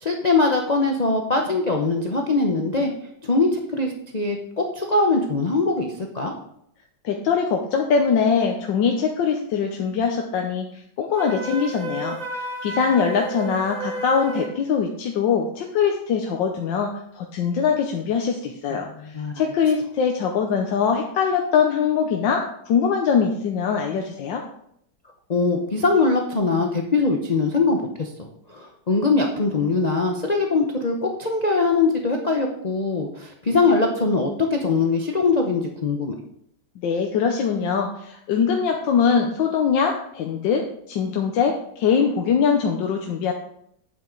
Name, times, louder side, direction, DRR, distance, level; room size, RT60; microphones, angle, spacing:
voice 1, 0.0-2.9 3.2-6.3 19.0-19.3 25.3-28.1 28.5-36.1, left 3 dB, 45° left, 1 dB, 0.5 m, -22 dB
voice 2, 7.0-10.7 11.0-12.2 12.6-24.4 36.8-43.3, left 6 dB, 75° left, 2 dB, 1.5 m, -22 dB
Wind instrument woodwind instrument, 11.2-14.6, right 2 dB, 25° right, 1.2 m, -32 dB
8.5 x 7.4 x 3.9 m, 0.70 s
omnidirectional pair, 2.1 m